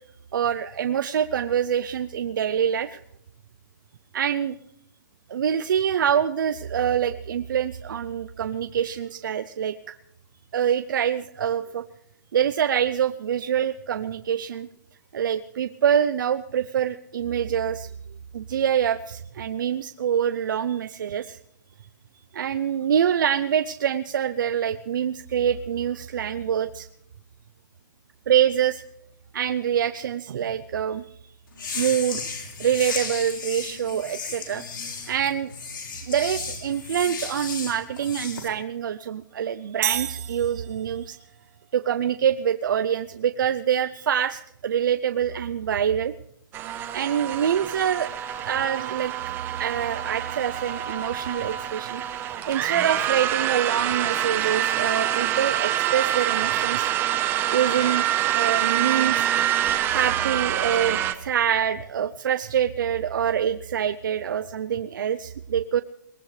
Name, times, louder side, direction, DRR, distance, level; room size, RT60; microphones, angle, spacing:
voice 1, 0.3-3.0 4.1-4.6 5.3-10.0 10.5-11.8 12.3-14.7 15.1-17.9 18.3-21.4 22.3-26.9 28.3-28.8 29.3-31.1 31.7-32.2 32.6-34.6 35.1-35.5 36.1-41.2 41.7-46.1 46.9-49.1 49.6-52.0 52.5-56.9 57.5-58.1 58.3-59.3 59.9-65.8, right 9 dB, 75° right, 11 dB, 0.7 m, -25 dB
sound 1, 31.5-38.5, left 5 dB, 85° left, 4.7 m, -34 dB
sound 2, 39.8-41.2, right 12 dB, 50° right, 1.2 m, -30 dB
sound 3, 46.5-61.1, right 12 dB, 20° right, 1.0 m, -26 dB
22.0 x 19.5 x 3.3 m, 0.75 s
hypercardioid pair, 155°, 11 cm